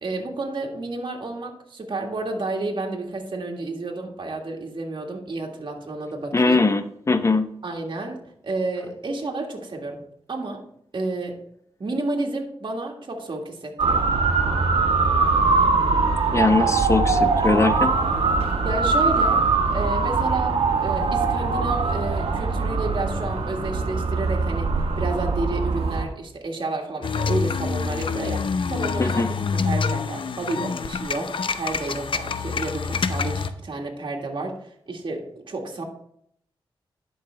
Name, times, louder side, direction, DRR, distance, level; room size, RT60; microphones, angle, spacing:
voice 1, 0.0-6.7 7.6-10.0 10.3-10.7 10.9-11.4 11.8-14.1 18.6-19.4 19.7-24.7 25.0-35.8, right 2 dB, 55° right, 0 dB, 1.8 m, -31 dB
voice 2, 6.3-7.5 16.3-17.9 29.0-29.3, left 3 dB, 30° left, 10 dB, 0.8 m, -21 dB
Motor vehicle (road) / Siren, 13.8-26.1, right 4 dB, 85° right, 1.2 m, -22 dB
sound 1, 27.0-33.5, left 5 dB, 60° left, 0.6 m, -26 dB
11.5 x 5.5 x 3.4 m, 0.70 s
cardioid pair, 65°, 10 cm